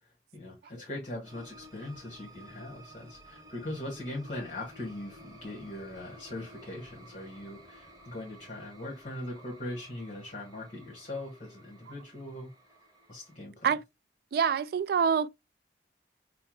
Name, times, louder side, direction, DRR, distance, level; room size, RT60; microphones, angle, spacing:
voice 1, 0.0-12.5 13.1-13.7, left 1 dB, 45° left, 1.2 m, -40 dB
sound 1, 1.2-13.4, right 1 dB, 20° right, 1.1 m, -54 dB
voice 2, 14.3-15.3, right 7 dB, 60° right, 0.3 m, -26 dB
5.5 x 2.1 x 3.0 m
head